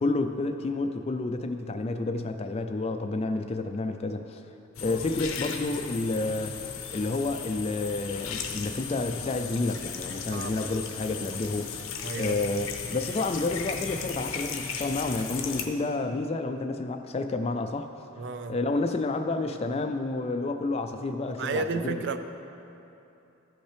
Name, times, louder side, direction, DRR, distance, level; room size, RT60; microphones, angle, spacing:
voice 1, 0.0-4.4 4.8-6.5 6.9-11.9 12.2-17.9 18.5-22.0, left 2 dB, 30° left, 7 dB, 0.3 m, -30 dB
sound 1, 4.7-15.7, left 6 dB, 65° left, 0.7 m, -36 dB
voice 2, 12.0-12.4 18.1-18.6 21.4-22.2, right 4 dB, 55° right, 9 dB, 0.4 m, -32 dB
14.0 x 5.3 x 3.4 m, 2.9 s
head